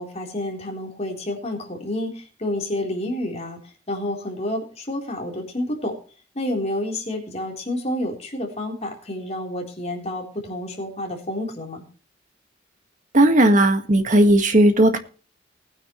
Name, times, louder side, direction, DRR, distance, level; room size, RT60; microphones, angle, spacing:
voice 1, 0.0-3.6 3.9-5.9 6.4-11.8, left 1 dB, 35° left, 1 dB, 3.8 m, -29 dB
voice 2, 13.1-15.0, right 1 dB, 40° right, 7 dB, 1.7 m, -16 dB
19.5 x 9.8 x 3.2 m, 0.39 s
head